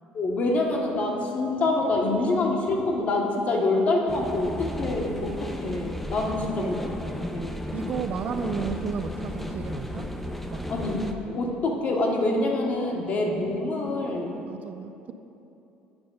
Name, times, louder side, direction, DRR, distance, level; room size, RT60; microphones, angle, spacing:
voice 1, 0.1-6.8 7.3-7.6 10.7-11.0 11.3-14.4, left 2 dB, 50° left, 0 dB, 1.2 m, -26 dB
sound 1, 4.1-11.1, equal, 5° left, 0.6 m, -34 dB
voice 2, 7.7-10.1 10.5-10.7 14.5-15.1, right 5 dB, 50° right, 9 dB, 0.4 m, -33 dB
8.7 x 5.4 x 3.8 m, 2.9 s
supercardioid pair, 90°, 3 cm